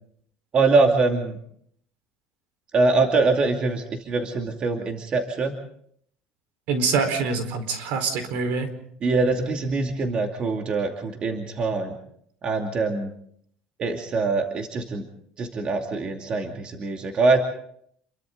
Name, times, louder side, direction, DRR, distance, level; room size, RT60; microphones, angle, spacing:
voice 1, 0.5-1.4 2.7-5.5 9.0-11.9 12.4-13.1 13.8-15.1 15.4-17.4, right 3 dB, 35° right, 3 dB, 2.6 m, -23 dB
voice 2, 6.7-8.7, right 4 dB, 70° right, 9 dB, 4.4 m, -25 dB
29.0 x 23.0 x 3.9 m, 0.66 s
cardioid pair, 140°, 3 cm